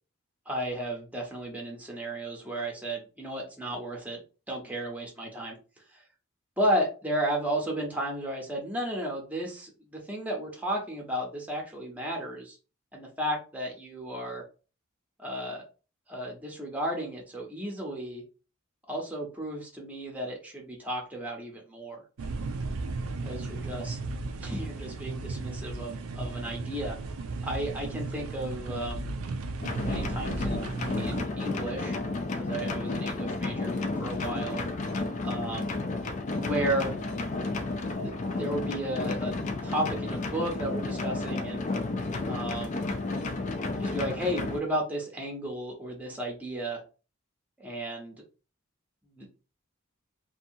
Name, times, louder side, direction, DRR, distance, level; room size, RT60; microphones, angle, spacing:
voice 1, 0.5-4.2 4.5-5.6 5.9-6.0 6.6-12.6 12.9-14.4 15.2-15.6 16.1-18.2 18.9-22.0 23.2-24.0 24.4-26.9 27.4-29.1 29.8-32.0 32.3-34.6 35.2-35.8 36.4-36.9 38.0-39.3 39.6-41.7 42.2-42.8 43.8-46.8 47.6-48.2 49.1-49.3, right 1 dB, 5° right, -1 dB, 0.7 m, -33 dB
sound 1, 22.2-31.2, right 3 dB, 80° right, 0.4 m, -35 dB
sound 2, 29.6-44.6, left 3 dB, 35° left, 0.3 m, -32 dB
2.6 x 2.3 x 2.7 m, 0.33 s
head